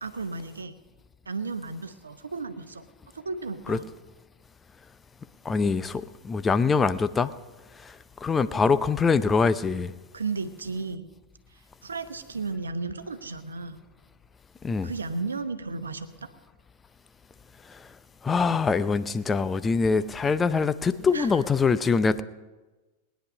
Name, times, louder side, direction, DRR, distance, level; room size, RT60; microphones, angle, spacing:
voice 1, 0.0-0.7 1.3-2.8 3.1-3.8 10.1-11.1 11.8-13.8 14.8-16.3 21.1-21.4, right 4 dB, 75° right, 0.9 m, -34 dB
voice 2, 5.4-7.3 7.8-7.9 8.2-9.9 14.6-14.9 18.2-22.2, left 5 dB, 15° left, 0.6 m, -24 dB
20.0 x 10.0 x 5.5 m
figure-of-eight pair, 90°, 0 cm